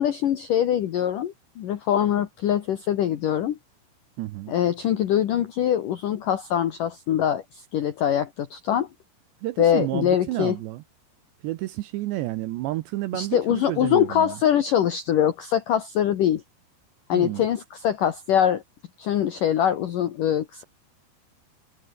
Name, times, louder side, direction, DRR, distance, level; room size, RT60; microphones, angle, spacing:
voice 1, 0.0-3.6 4.5-8.9 9.6-10.6 13.1-16.4 17.1-18.6 19.0-20.6, left 10 dB, 75° left, 2.0 m, -23 dB
voice 2, 4.2-4.6 9.4-10.8 11.4-14.4 17.1-17.5, right 17 dB, 75° right, 2.7 m, -30 dB
omnidirectional pair, 5.9 m